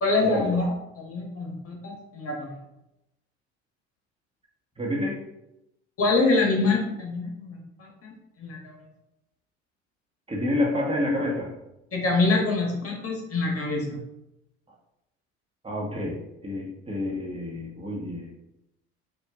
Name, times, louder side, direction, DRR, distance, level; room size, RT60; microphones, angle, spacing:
voice 1, 0.0-2.6 6.0-8.1 8.4-8.7 11.9-14.0, left 3 dB, 40° left, 0 dB, 1.4 m, -25 dB
voice 2, 4.8-5.2 10.3-11.5 15.6-16.2 16.4-18.3, left 1 dB, 15° right, -3 dB, 1.3 m, -28 dB
4.5 x 2.5 x 3.5 m, 0.88 s
hypercardioid pair, 65°, 34 cm